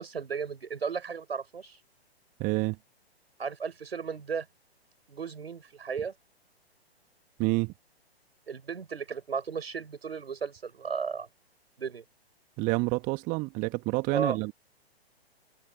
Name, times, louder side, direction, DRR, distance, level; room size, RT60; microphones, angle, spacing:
voice 1, 0.0-1.8 3.4-4.5 5.1-6.1 8.5-11.3 11.8-12.0 14.1-14.4, right 6 dB, 70° right, 5.5 m, -34 dB
voice 2, 2.4-2.8 7.4-7.7 12.6-14.5, right 25 dB, 25° right, 1.8 m, -28 dB
figure-of-eight pair, 120°, 32 cm